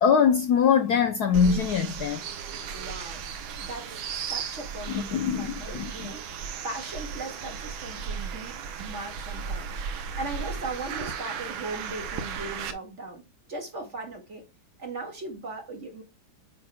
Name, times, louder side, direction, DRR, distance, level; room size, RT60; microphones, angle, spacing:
voice 1, 0.0-2.2 4.9-6.1, left 7 dB, 65° left, 1.1 m, -23 dB
sound 1, 1.3-12.7, right 6 dB, 80° right, 1.6 m, -35 dB
voice 2, 2.7-3.2 3.6-4.0 4.3-6.2 6.6-9.8 10.2-13.2 13.5-14.4 14.8-16.0, right 2 dB, 35° right, 2.3 m, -38 dB
9.5 x 5.9 x 2.3 m
omnidirectional pair, 2.2 m